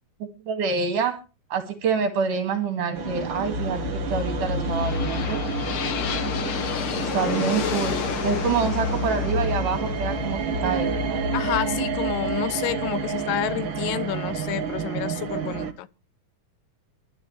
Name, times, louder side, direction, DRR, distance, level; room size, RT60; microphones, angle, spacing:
voice 1, 0.5-1.2 1.5-3.8 4.1-5.4 7.0-8.0 8.2-11.2, right 6 dB, 70° right, 3.8 m, -26 dB
sound 1, 2.9-15.7, right 2 dB, 45° right, 2.1 m, -28 dB
sound 2, 4.0-12.0, left 7 dB, 55° left, 1.6 m, -32 dB
voice 2, 11.3-15.9, left 14 dB, 85° left, 2.6 m, -29 dB
24.5 x 11.5 x 3.3 m
omnidirectional pair, 3.9 m